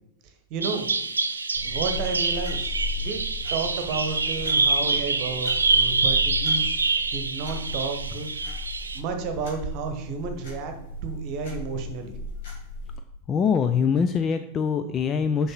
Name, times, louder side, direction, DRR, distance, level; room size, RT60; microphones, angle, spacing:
voice 1, 0.5-0.9 1.6-3.2 3.5-6.7 7.1-8.3 8.9-10.7 11.0-12.1, right 4 dB, 40° right, 6 dB, 1.1 m, -31 dB
Bird vocalization bird call bird song, 0.6-9.0, right 3 dB, 75° right, 0.5 m, -26 dB
sound 1, 1.5-13.0, left 1 dB, 55° left, 2.4 m, -36 dB
voice 2, 13.3-15.5, left 6 dB, 25° left, 8 dB, 0.4 m, -23 dB
6.4 x 5.3 x 4.5 m, 0.81 s
figure-of-eight pair, 90°, 0 cm